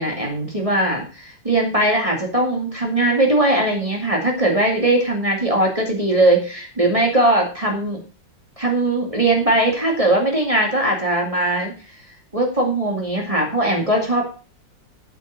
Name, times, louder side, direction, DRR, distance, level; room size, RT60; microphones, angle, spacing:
voice 1, 0.0-8.0 8.6-11.7 12.3-14.2, right 1 dB, 20° right, 0 dB, 2.3 m, -20 dB
8.4 x 7.9 x 6.5 m, 0.36 s
omnidirectional pair, 2.0 m